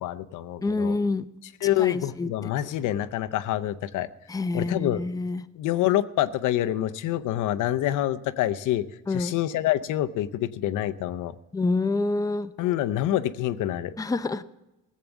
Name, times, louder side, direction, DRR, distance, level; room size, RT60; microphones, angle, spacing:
voice 1, 0.0-1.0 1.6-4.1 4.5-5.0 5.6-8.8 9.1-11.3 12.6-13.9, left 13 dB, 90° left, 10 dB, 0.7 m, -26 dB
voice 2, 0.6-1.3 1.6-2.5 4.3-5.4 9.1-9.3 11.5-12.5 14.0-14.4, left 3 dB, 10° left, 11 dB, 0.5 m, -27 dB
16.0 x 7.6 x 7.1 m, 1.0 s
cardioid pair, 90°, 30 cm